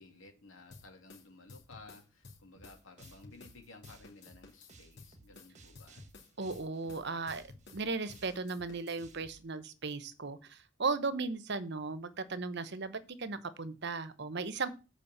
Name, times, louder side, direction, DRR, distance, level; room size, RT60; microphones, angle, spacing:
voice 1, 0.0-6.1, left 3 dB, 75° left, 3 dB, 2.6 m, -55 dB
sound 1, 0.7-3.6 3.8-9.0, left 3 dB, 55° left, 2.6 m, -54 dB
sound 2, 2.6-9.4, right 2 dB, 35° right, 1.5 m, -58 dB
voice 2, 6.4-14.7, right 4 dB, 55° right, 13 dB, 1.0 m, -36 dB
8.4 x 5.0 x 7.3 m, 0.31 s
head